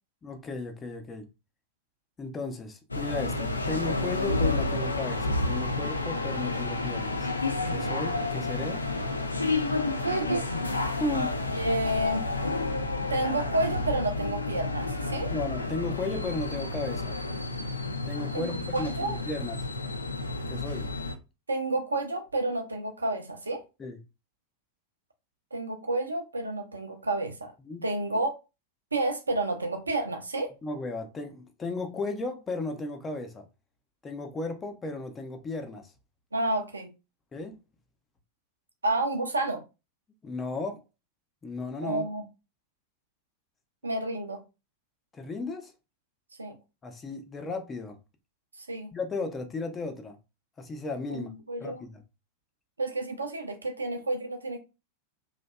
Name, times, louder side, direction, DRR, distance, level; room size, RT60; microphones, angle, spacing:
voice 1, 0.2-1.3 2.2-7.3 7.7-8.8 10.9-11.3 15.3-17.2 18.1-19.6 20.5-20.9 23.8-24.0 27.6-27.8 30.6-33.5 34.0-35.9 37.3-37.6 40.2-40.8 41.4-42.1 45.1-45.7 46.8-48.0 48.9-50.2 50.6-51.3 51.6-52.0, left 3 dB, 20° left, 0.4 m, -35 dB
sound 1, 2.9-21.2, left 2 dB, 80° left, 0.3 m, -30 dB
voice 2, 10.0-10.5 11.5-12.2 13.1-15.3 18.3-18.5 18.7-19.2 21.5-23.6 25.5-27.5 27.8-28.3 28.9-30.5 36.3-36.9 38.8-39.6 41.8-42.2 43.8-44.4 46.4-46.5 48.7-48.9 51.1-51.8 52.8-54.6, right 2 dB, 80° right, 0.5 m, -30 dB
2.6 x 2.1 x 2.2 m
figure-of-eight pair, 90°, 0 cm